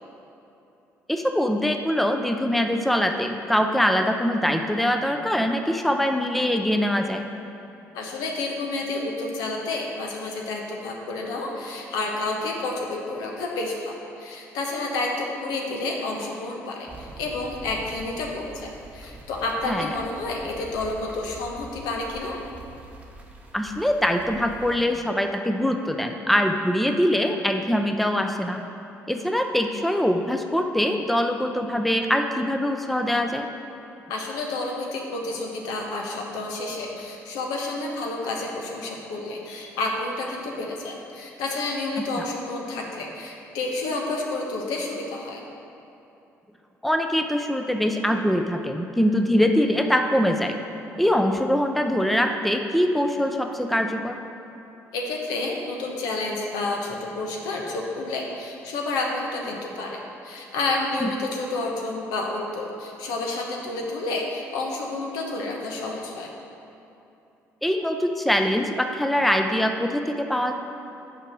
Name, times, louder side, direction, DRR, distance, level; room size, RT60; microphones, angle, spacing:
voice 1, 1.1-7.2 19.7-19.9 23.5-28.6 29.1-33.5 42.2-42.3 46.8-50.6 51.0-54.2 61.0-61.1 67.6-70.5, equal, ahead, 5 dB, 0.6 m, -23 dB
voice 2, 7.9-22.4 34.1-45.4 54.9-66.3, left 2 dB, 80° left, 0 dB, 1.0 m, -30 dB
sound 1, 16.9-24.8, right 2 dB, 20° right, 1.0 m, -44 dB
6.7 x 4.8 x 6.1 m, 2.8 s
supercardioid pair, 65°, 7 cm